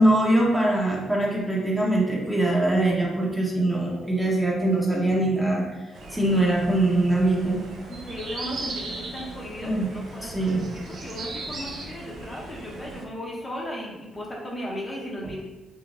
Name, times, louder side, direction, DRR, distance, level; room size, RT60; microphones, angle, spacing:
voice 1, 0.0-5.6 6.1-7.6 9.6-9.9 10.2-10.6, right 1 dB, 5° right, -4 dB, 0.8 m, -22 dB
sound 1, 5.9-13.0, right 2 dB, 60° right, 0.7 m, -38 dB
voice 2, 7.9-15.4, equal, 30° left, -3 dB, 0.8 m, -36 dB
4.9 x 2.2 x 2.4 m, 1.1 s
cardioid pair, 90°, 0 cm